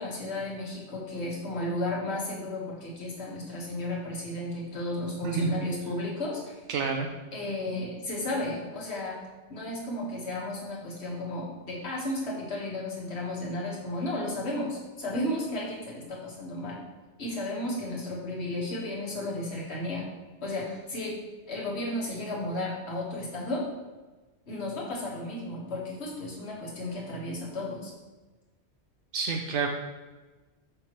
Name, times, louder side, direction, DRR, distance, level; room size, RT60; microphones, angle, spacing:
voice 1, 0.0-6.6 7.3-9.2 9.5-16.8 17.2-20.1 20.4-21.1 21.5-23.6 24.5-27.9, left 1 dB, 65° left, -4 dB, 1.8 m, -33 dB
voice 2, 5.2-5.6 6.7-7.1 29.1-29.7, right 5 dB, 80° right, 3 dB, 0.9 m, -29 dB
6.4 x 6.0 x 3.1 m, 1.2 s
omnidirectional pair, 1.2 m